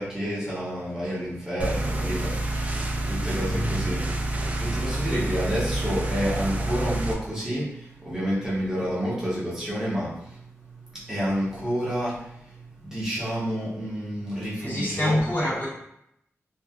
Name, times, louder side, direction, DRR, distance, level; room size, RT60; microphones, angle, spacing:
voice 1, 0.0-15.2, equal, 10° right, -9 dB, 1.0 m, -30 dB
sound 1, 1.6-7.1, right 1 dB, 30° right, 0.4 m, -28 dB
voice 2, 3.3-3.8 14.6-15.7, left 1 dB, 40° left, -8 dB, 1.1 m, -26 dB
3.2 x 2.6 x 2.3 m, 0.79 s
wide cardioid pair, 110°, 5 cm